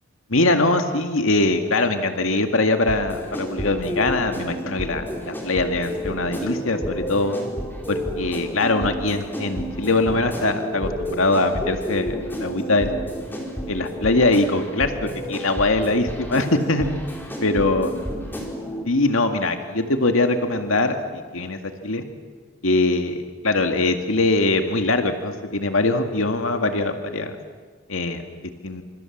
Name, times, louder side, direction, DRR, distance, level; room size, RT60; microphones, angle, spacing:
voice 1, 0.3-7.4 7.9-13.0 13.7-16.9 17.4-17.9 18.9-22.0 22.6-27.4 27.9-28.2 28.6-28.8, left 2 dB, 85° left, 6 dB, 2.1 m, -22 dB
sound 1, 2.8-18.8, equal, 10° left, 4.2 m, -31 dB
29.5 x 27.0 x 7.3 m, 1.5 s
head